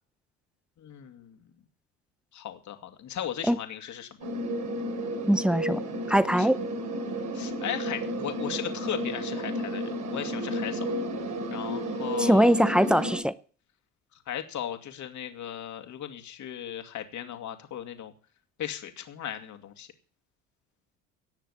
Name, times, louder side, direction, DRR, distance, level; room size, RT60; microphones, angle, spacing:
voice 1, 0.8-1.5 2.3-4.1 6.3-6.5 7.3-10.9 11.5-12.6 14.3-18.1 18.6-19.9, left 10 dB, 50° left, 2.5 m, -37 dB
sound 1, 4.2-13.2, equal, 50° right, 4.4 m, -32 dB
voice 2, 5.3-5.8 6.1-6.6 12.2-13.3, equal, ahead, 0.7 m, -22 dB
18.0 x 6.7 x 7.2 m
supercardioid pair, 80°, 37 cm